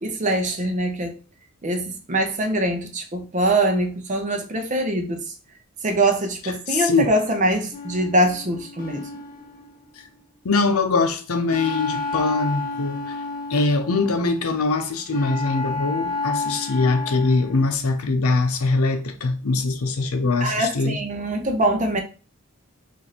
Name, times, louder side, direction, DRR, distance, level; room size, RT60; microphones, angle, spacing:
voice 1, 0.0-1.2 1.6-5.3 5.8-9.1 20.4-22.0, right 1 dB, 35° right, 0.6 m, -23 dB
voice 2, 6.7-7.1 10.4-13.2 13.5-21.0, left 3 dB, 80° left, 0.6 m, -22 dB
sound 1, 7.7-10.2 11.5-14.3 15.1-17.7, left 3 dB, 40° left, 1.0 m, -31 dB
3.1 x 2.6 x 4.1 m
head